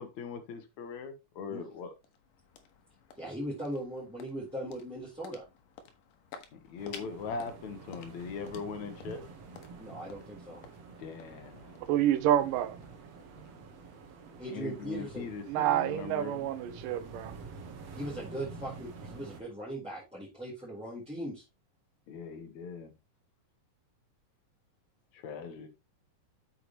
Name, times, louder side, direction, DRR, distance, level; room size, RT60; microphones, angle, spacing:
voice 1, 0.0-1.9 6.5-9.2 11.0-11.8 14.5-16.5 22.1-22.9 25.1-25.7, left 5 dB, 65° left, 2.4 m, -40 dB
sound 1, 1.6-14.0, left 7 dB, 80° left, 2.7 m, -54 dB
voice 2, 3.2-5.4 9.8-10.6 14.4-15.3 17.9-21.4, right 1 dB, ahead, 3.5 m, -39 dB
sound 2, 6.8-19.4, right 4 dB, 55° right, 2.2 m, -48 dB
voice 3, 11.8-12.8 15.5-17.4 17.6-17.7, right 12 dB, 85° right, 2.5 m, -28 dB
8.5 x 7.0 x 3.1 m
omnidirectional pair, 3.8 m